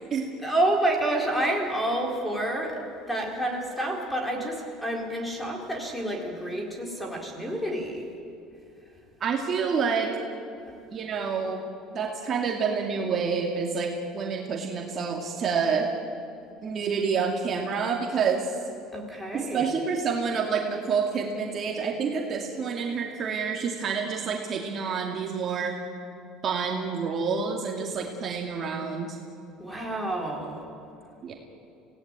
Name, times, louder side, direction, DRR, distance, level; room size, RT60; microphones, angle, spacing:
voice 1, 0.4-2.8 3.1-8.1 10.7-10.8 18.9-19.7 29.6-30.6, right 1 dB, 5° left, 1 dB, 4.3 m, -29 dB
voice 2, 9.2-10.2 10.9-11.7 11.9-15.9 16.6-18.5 19.3-25.8 26.4-29.2 31.2-31.3, right 5 dB, 35° right, 1 dB, 2.5 m, -28 dB
26.5 x 18.0 x 9.1 m, 2.7 s
cardioid pair, 145°, 0 cm